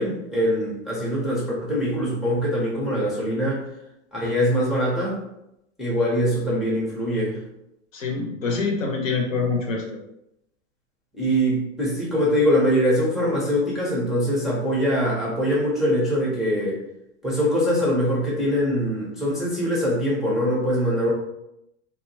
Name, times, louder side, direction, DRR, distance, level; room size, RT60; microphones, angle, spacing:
voice 1, 0.0-3.6 4.1-5.2 5.8-7.4 11.1-16.8 17.2-21.1, equal, ahead, -6 dB, 0.4 m, -23 dB
voice 2, 7.9-10.0, left 4 dB, 85° left, 1 dB, 0.8 m, -25 dB
2.7 x 2.2 x 2.6 m, 0.83 s
hypercardioid pair, 115°, 38 cm